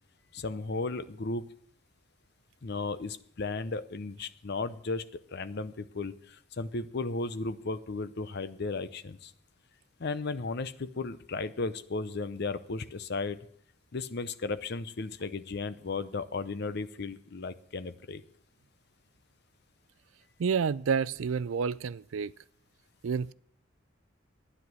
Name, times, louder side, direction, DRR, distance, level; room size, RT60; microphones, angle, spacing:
voice 1, 0.3-1.4 2.6-5.0 5.3-9.3 10.0-13.4 13.9-18.2, left 3 dB, 55° left, 0.7 m, -35 dB
voice 2, 20.4-22.3 23.0-23.3, right 6 dB, 75° right, 0.4 m, -29 dB
12.5 x 10.0 x 6.2 m
head